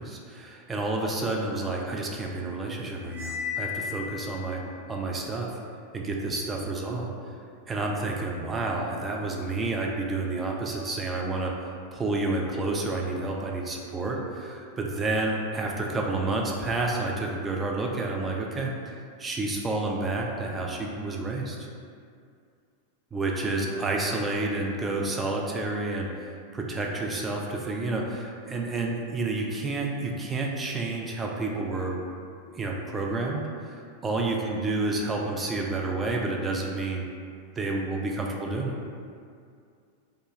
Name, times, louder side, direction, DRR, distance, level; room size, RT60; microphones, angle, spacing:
voice 1, 0.0-4.6 4.9-5.6 5.9-7.1 7.7-11.5 11.9-21.7 23.1-32.0 32.5-37.0 37.6-38.7, right 2 dB, 15° right, -1 dB, 0.3 m, -30 dB
Cymbal, 3.1-4.5, left 7 dB, 75° right, 0.7 m, -34 dB
2.2 x 2.0 x 2.9 m, 2.3 s
figure-of-eight pair, 90°, 0 cm